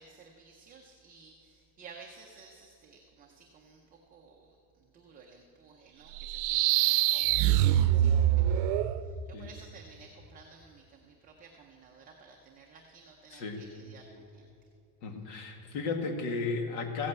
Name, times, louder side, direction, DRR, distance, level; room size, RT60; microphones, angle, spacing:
voice 1, 0.0-3.8 4.1-8.6 8.9-14.5, right 4 dB, 15° right, 0 dB, 0.6 m, -54 dB
sound 1, 6.2-9.0, right 12 dB, 85° right, 0.6 m, -24 dB
voice 2, 13.3-13.6 15.0-17.1, left 4 dB, 70° left, 4 dB, 1.9 m, -34 dB
15.0 x 8.6 x 8.0 m, 2.6 s
cardioid pair, 170°, 50 cm